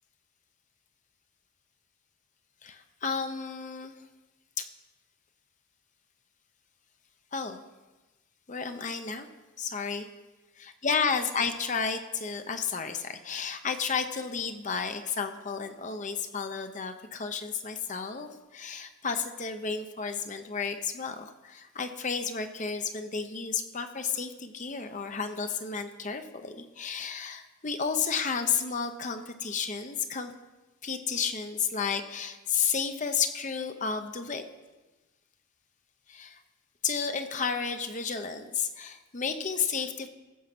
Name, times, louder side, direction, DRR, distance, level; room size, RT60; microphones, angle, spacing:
voice 1, 2.6-3.9 4.6-4.7 7.3-7.6 8.5-9.3 9.6-10.1 10.8-30.3 30.8-34.4 36.1-36.4 36.8-40.1, left 6 dB, 35° left, 7 dB, 0.7 m, -32 dB
15.0 x 7.2 x 5.9 m, 1.1 s
head